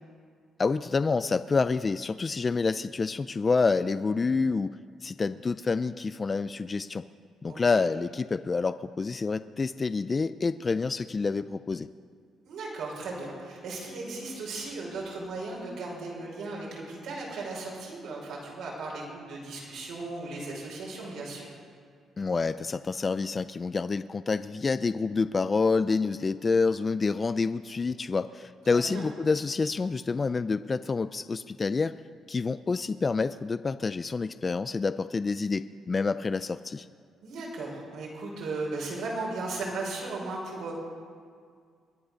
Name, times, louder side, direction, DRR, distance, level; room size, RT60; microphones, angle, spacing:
voice 1, 0.6-7.0 7.4-11.9 22.2-32.0 32.3-36.9, left 4 dB, 30° left, 13 dB, 0.4 m, -28 dB
voice 2, 12.4-21.5 28.7-29.1 37.2-40.7, right 3 dB, 80° right, -3 dB, 5.6 m, -36 dB
22.5 x 9.9 x 6.5 m, 2.1 s
cardioid pair, 90°, 0 cm